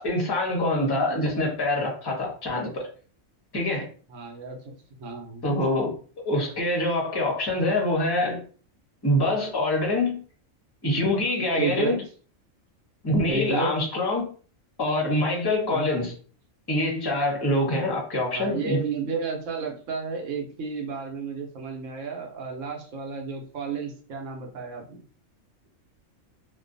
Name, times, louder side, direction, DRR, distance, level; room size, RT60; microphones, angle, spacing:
voice 1, 0.0-2.9 3.5-3.9 5.4-5.9 6.2-8.4 9.0-10.2 10.8-12.0 13.0-14.3 14.8-16.1 16.7-18.8, left 1 dB, 25° left, 0.6 m, -25 dB
voice 2, 4.1-5.5 11.6-12.0 13.3-13.7 15.7-16.1 18.3-25.0, right 5 dB, 70° right, 1.0 m, -32 dB
2.5 x 2.2 x 2.5 m
omnidirectional pair, 1.4 m